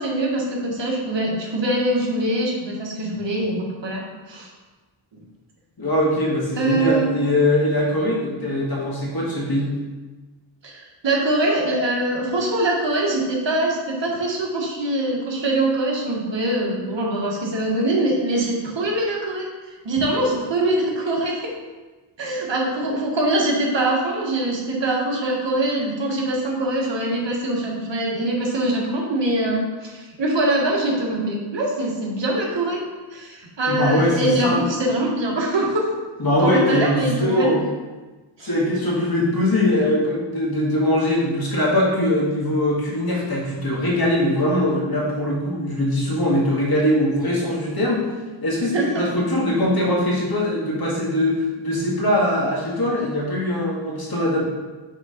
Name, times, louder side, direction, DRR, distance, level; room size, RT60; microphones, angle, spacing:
voice 1, 0.0-4.5 6.5-7.1 10.6-19.5 19.8-21.5 22.2-32.8 33.1-35.8 36.4-37.5 38.4-38.5 48.7-49.1, right 1 dB, 60° right, -2 dB, 1.6 m, -23 dB
voice 2, 5.8-9.7 20.0-20.1 33.7-34.6 36.2-37.6 38.4-48.0 48.4-54.4, left 1 dB, 45° left, -4 dB, 2.1 m, -21 dB
6.4 x 3.8 x 5.1 m, 1.3 s
wide cardioid pair, 80°, 48 cm